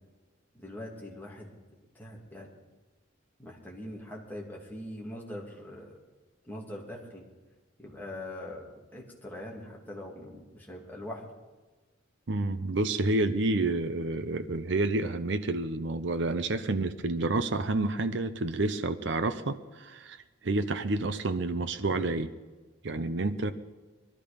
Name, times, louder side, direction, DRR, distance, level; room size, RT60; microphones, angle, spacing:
voice 1, 0.5-1.5 1.9-2.5 3.4-5.9 6.4-7.3 7.8-11.3, left 1 dB, 10° left, -3 dB, 2.6 m, -42 dB
voice 2, 12.3-20.2 20.4-22.3 22.8-23.5, right 2 dB, 60° right, 9 dB, 0.7 m, -29 dB
21.5 x 13.0 x 5.2 m, 1.3 s
head